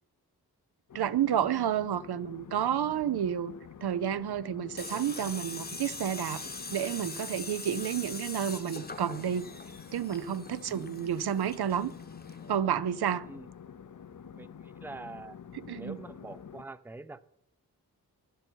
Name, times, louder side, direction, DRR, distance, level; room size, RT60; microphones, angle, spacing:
sound 1, 0.9-16.6, left 7 dB, 50° left, 0.6 m, -48 dB
voice 1, 0.9-3.6 3.8-6.5 6.7-9.5 9.9-11.9 12.5-13.3 15.7-16.0, right 9 dB, 80° right, 0.5 m, -30 dB
Tools, 4.8-12.6, left 3 dB, 25° left, 0.9 m, -42 dB
voice 2, 14.4-15.4 15.7-17.3, right 2 dB, 5° right, 0.5 m, -45 dB
12.0 x 11.0 x 4.5 m
cardioid pair, 50°, 39 cm